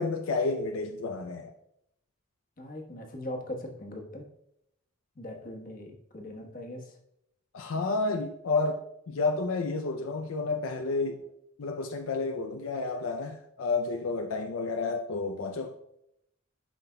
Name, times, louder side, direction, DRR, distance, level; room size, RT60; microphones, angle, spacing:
voice 1, 0.0-1.5 7.5-8.8 9.1-11.3 11.6-15.7, left 3 dB, 75° left, 0.5 m, -30 dB
voice 2, 2.6-4.2 5.1-7.0, left 1 dB, 45° left, 1.2 m, -40 dB
12.0 x 5.8 x 2.2 m
head